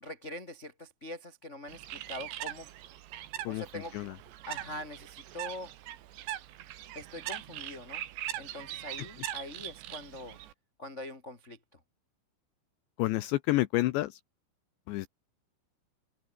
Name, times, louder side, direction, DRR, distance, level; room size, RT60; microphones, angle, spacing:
voice 1, 0.0-2.7 3.4-4.0 4.5-5.7 6.9-8.0 8.3-10.4 10.8-11.8, left 1 dB, 35° left, 1.1 m, -43 dB
Bird, 1.7-10.5, right 13 dB, 75° right, 3.7 m, -41 dB
voice 2, 13.0-14.2 14.9-15.1, left 18 dB, 80° left, 3.0 m, -29 dB
open air
omnidirectional pair, 5.3 m